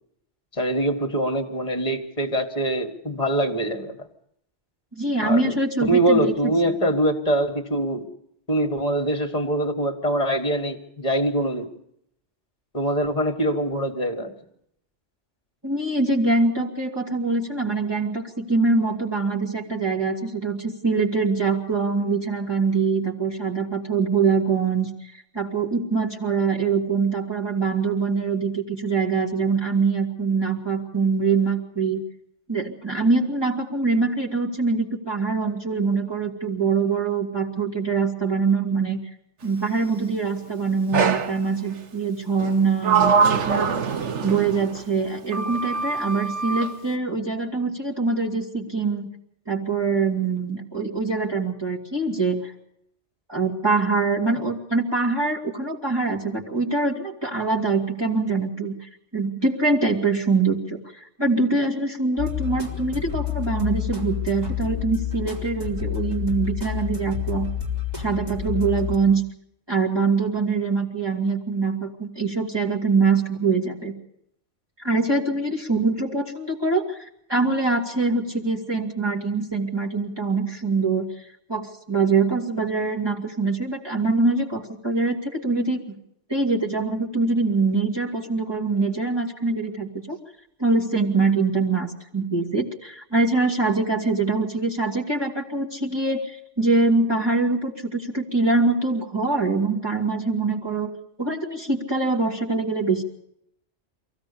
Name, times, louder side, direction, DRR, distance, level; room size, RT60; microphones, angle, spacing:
voice 1, 0.5-4.1 5.2-5.6 5.9-8.1 8.5-11.7 12.7-14.3, right 1 dB, 30° left, 7 dB, 2.0 m, -23 dB
voice 2, 4.9-6.3 15.6-24.9 25.3-32.0 32.5-39.0 39.4-43.7 44.2-49.1 49.5-52.5 53.3-58.7 59.1-67.5 68.0-69.2 69.7-73.9 74.8-81.1 81.5-85.8 86.3-90.2 90.6-100.9 101.2-103.0, right 4 dB, 20° right, -3 dB, 2.4 m, -24 dB
Sliding door, 40.9-41.4 42.4-44.8 45.3-46.7, right 5 dB, 75° right, 1.4 m, -23 dB
sound 1, 62.2-69.0, left 10 dB, 35° right, 3.6 m, -29 dB
23.5 x 16.0 x 7.0 m, 0.74 s
omnidirectional pair, 1.2 m